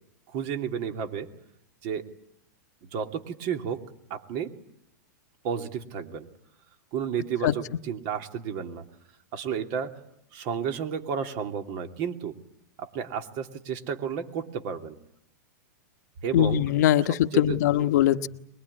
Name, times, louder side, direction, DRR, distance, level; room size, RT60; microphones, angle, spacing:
voice 1, 0.3-1.3 1.8-2.1 2.8-3.8 4.1-4.5 5.4-6.3 6.9-8.8 9.3-10.0 10.3-12.3 12.8-15.0 16.2-16.6 17.3-17.6 18.1-18.3, right 7 dB, 45° right, 5 dB, 2.8 m, -32 dB
voice 2, 16.3-18.3, left 12 dB, 65° left, 9 dB, 1.2 m, -22 dB
23.5 x 21.5 x 9.9 m, 0.77 s
hypercardioid pair, 120°, 10 cm